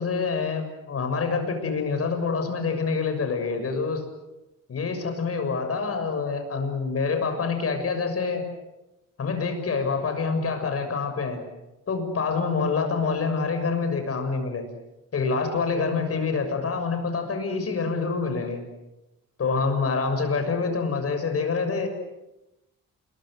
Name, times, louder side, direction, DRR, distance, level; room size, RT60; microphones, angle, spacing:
voice 1, 0.0-4.0 4.7-8.5 9.2-11.4 11.9-14.6 15.1-18.6 19.4-21.9, left 4 dB, 50° left, 6 dB, 6.8 m, -26 dB
29.0 x 22.5 x 7.9 m, 0.96 s
cardioid pair, 120°, 30 cm